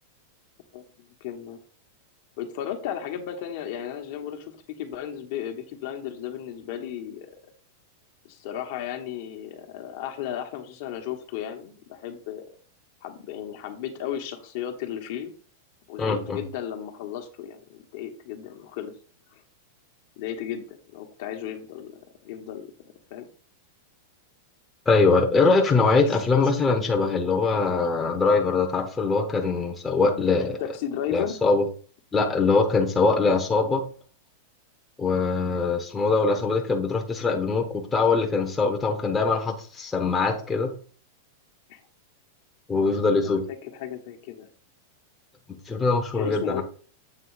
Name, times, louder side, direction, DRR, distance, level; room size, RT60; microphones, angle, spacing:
voice 1, 1.2-1.6 2.4-7.3 8.2-12.5 13.0-15.3 15.9-18.9 19.3-19.4 20.2-23.3 26.0-26.1 30.6-31.4 41.7-41.8 42.8-43.3 43.6-44.5 46.1-46.6, left 10 dB, 60° left, 4 dB, 1.2 m, -35 dB
voice 2, 16.0-16.4 24.9-30.6 31.1-31.6 32.1-33.8 35.0-40.7 42.7-43.4 45.5-46.6, left 4 dB, 15° left, 2 dB, 0.9 m, -22 dB
7.7 x 3.1 x 4.7 m, 0.41 s
supercardioid pair, 140°, 0 cm